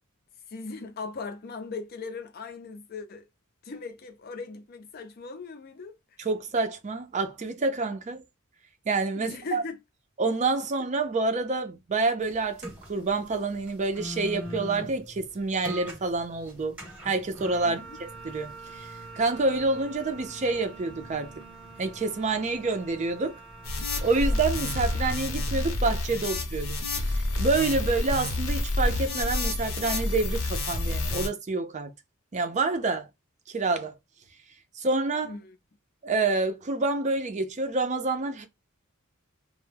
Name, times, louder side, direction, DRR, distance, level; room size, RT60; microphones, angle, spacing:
voice 1, 0.5-3.3 3.6-6.0 9.2-9.8 17.6-18.0 35.2-35.6, left 4 dB, 45° left, 0.5 m, -39 dB
voice 2, 6.2-8.2 8.9-9.6 10.2-16.8 17.0-21.3 21.8-23.4 24.0-26.8 27.0-31.9 32.3-33.1 33.5-33.9 34.8-35.3 36.0-38.5, right 3 dB, 35° right, 0.4 m, -28 dB
sound 1, 12.2-25.2, right 1 dB, 5° right, 0.8 m, -43 dB
sound 2, 23.6-31.3, left 2 dB, 75° left, 0.7 m, -29 dB
2.1 x 2.0 x 3.2 m
head